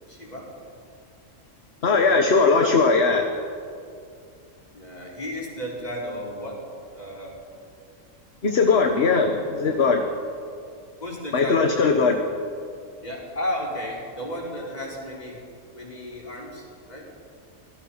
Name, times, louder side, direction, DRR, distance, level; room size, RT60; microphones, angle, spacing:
voice 1, 0.1-0.5 4.7-6.6 6.9-7.4 11.0-11.9 13.0-15.4 15.7-17.1, equal, 30° left, -3 dB, 4.9 m, -33 dB
voice 2, 1.8-3.3 8.4-10.0 11.3-12.2, left 4 dB, 50° left, 4 dB, 1.5 m, -19 dB
26.0 x 18.0 x 5.8 m, 2.3 s
omnidirectional pair, 1.4 m